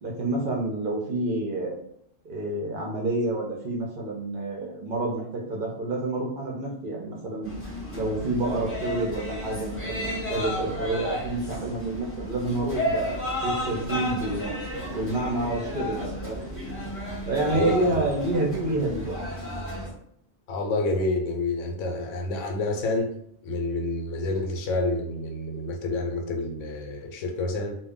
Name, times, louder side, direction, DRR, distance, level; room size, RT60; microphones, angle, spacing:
voice 1, 0.0-1.8 2.2-7.5 7.9-14.6 14.9-16.4 17.3-19.2, right 2 dB, 55° right, -2 dB, 0.6 m, -28 dB
sound 1, 7.4-19.9, equal, 15° left, 0.7 m, -33 dB
voice 2, 20.5-23.2 23.4-27.8, left 2 dB, 75° left, 3 dB, 0.9 m, -28 dB
2.2 x 2.1 x 3.5 m, 0.68 s
omnidirectional pair, 1.3 m